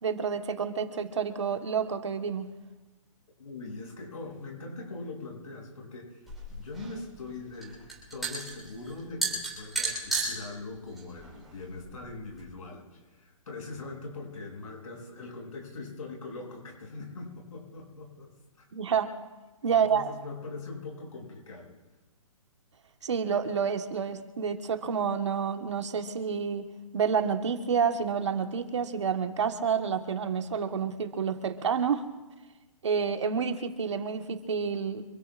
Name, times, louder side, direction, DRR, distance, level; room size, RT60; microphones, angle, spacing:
voice 1, 0.0-2.5 18.7-19.1 19.6-20.1 23.0-32.0 32.8-35.0, right 6 dB, 55° right, 6 dB, 1.4 m, -29 dB
voice 2, 3.4-7.8 8.1-18.3 18.6-18.7 19.7-21.7, left 3 dB, 85° left, -1 dB, 7.1 m, -42 dB
sound 1, 6.3-12.4, right 3 dB, ahead, 3.9 m, -35 dB
27.0 x 20.0 x 2.5 m, 1.1 s
hypercardioid pair, 180°, 17 cm